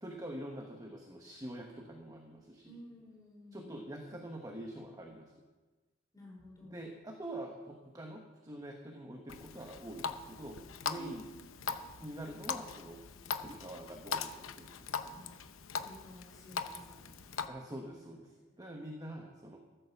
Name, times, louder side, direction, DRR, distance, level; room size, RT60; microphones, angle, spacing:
voice 1, 0.0-2.8 3.5-5.3 6.6-11.3 12.0-13.0 13.4-15.3 17.5-18.3 18.6-19.6, right 1 dB, 20° right, 2 dB, 1.2 m, -45 dB
voice 2, 2.6-3.8 6.1-6.8 10.9-11.7 15.1-15.3 15.8-17.4 17.9-18.6, left 1 dB, 20° left, -3 dB, 5.1 m, -54 dB
Water tap faucet, 9.3-17.5, left 5 dB, 75° left, 0.8 m, -41 dB
14.0 x 8.8 x 7.1 m, 1.3 s
head